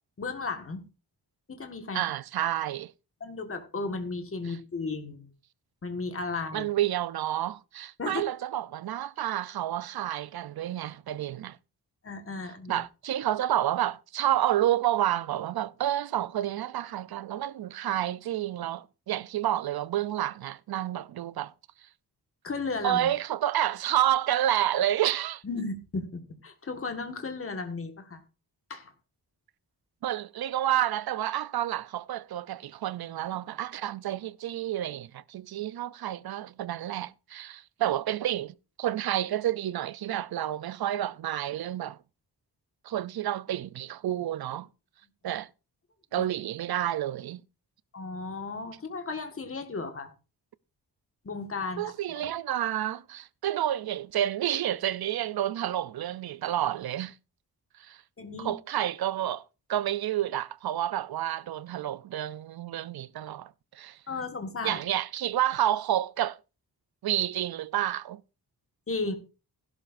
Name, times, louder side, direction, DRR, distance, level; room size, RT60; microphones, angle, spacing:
voice 1, 0.2-0.8 1.5-2.0 3.2-5.3 5.8-6.7 8.0-8.2 12.0-12.8 22.4-23.1 25.4-28.2 28.7-28.9 47.9-50.1 51.2-51.9 58.2-58.5 64.1-64.8 68.9-69.1, left 3 dB, 35° left, 1.6 m, -34 dB
voice 2, 1.9-2.9 6.5-11.6 12.7-21.5 22.8-25.4 30.0-42.0 42.8-44.7 45.2-45.5 46.1-47.4 51.8-57.1 57.8-58.0 58.4-59.4 59.7-64.0 64.6-66.4 67.0-68.2, right 12 dB, 65° right, 0.5 m, -29 dB
16.0 x 11.5 x 2.5 m
wide cardioid pair, 160°, 39 cm